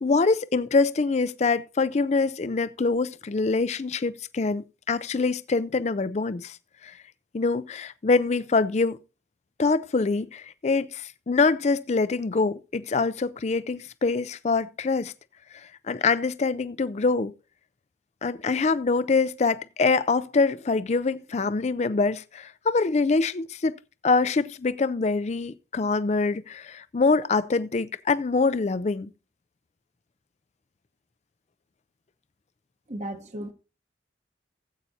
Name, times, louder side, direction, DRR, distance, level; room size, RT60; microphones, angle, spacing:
voice 1, 0.0-6.6 6.8-6.9 7.3-9.0 9.6-15.1 15.9-17.3 18.2-23.7 24.0-29.1, left 4 dB, 40° left, 0.4 m, -24 dB
voice 2, 32.9-33.5, right 1 dB, 40° right, 1.1 m, -35 dB
16.0 x 8.3 x 2.7 m
head